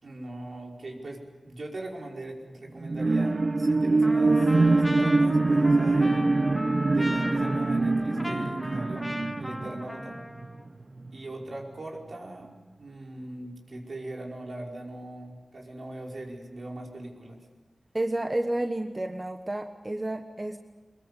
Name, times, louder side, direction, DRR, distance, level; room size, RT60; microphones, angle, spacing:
voice 1, 0.0-6.3 6.9-9.1 9.4-10.2 11.1-12.5 12.8-17.4, right 1 dB, 75° right, -1 dB, 5.1 m, -40 dB
sound 1, 2.8-10.6 11.0-11.1, right 3 dB, 55° right, 1.0 m, -24 dB
Trumpet, 4.0-10.6, left 1 dB, 15° left, 1.7 m, -37 dB
voice 2, 17.9-20.6, right 1 dB, 30° right, 5 dB, 1.3 m, -30 dB
23.0 x 22.0 x 8.3 m, 1.2 s
wide cardioid pair, 70°, 0 cm